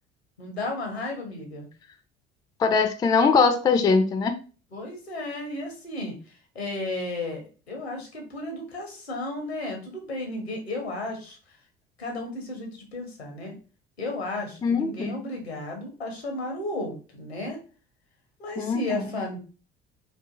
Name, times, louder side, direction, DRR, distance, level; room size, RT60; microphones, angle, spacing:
voice 1, 0.4-1.7 4.7-11.4 12.0-13.5 14.0-17.6 18.4-19.4, left 2 dB, 85° left, 3 dB, 0.7 m, -33 dB
voice 2, 2.6-4.3 14.6-15.2 18.6-19.0, left 5 dB, 15° left, 8 dB, 0.3 m, -22 dB
2.5 x 2.5 x 2.4 m, 0.35 s
figure-of-eight pair, 55°, 31 cm